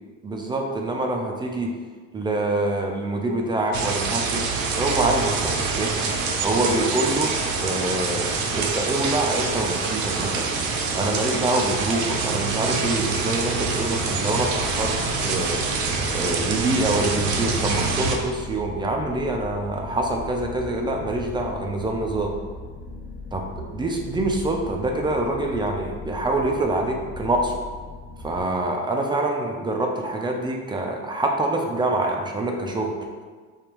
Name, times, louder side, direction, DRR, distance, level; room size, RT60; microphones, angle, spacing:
voice 1, 0.2-1.7 2.1-4.4 4.8-5.9 6.4-7.3 7.6-10.5 10.9-14.9 15.2-15.6 16.1-22.3 23.3-27.6 28.2-32.9, right 2 dB, 15° right, 1 dB, 0.4 m, -25 dB
sound 1, 3.7-18.2, right 4 dB, 65° right, 0.7 m, -25 dB
sound 2, 14.4-28.4, left 2 dB, 35° left, 0.7 m, -38 dB
5.2 x 2.3 x 2.9 m, 1.5 s
supercardioid pair, 110°, 32 cm